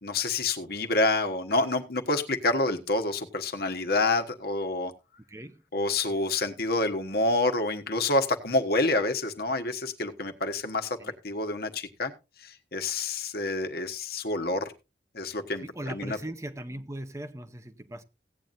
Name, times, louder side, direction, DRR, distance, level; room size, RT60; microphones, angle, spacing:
voice 1, 0.0-4.9 5.7-12.1 12.4-14.7 15.1-16.2, left 2 dB, 60° left, 1.4 m, -28 dB
voice 2, 5.3-5.6 11.0-11.1 15.6-18.0, right 1 dB, 15° right, 0.7 m, -38 dB
16.5 x 9.1 x 2.6 m
head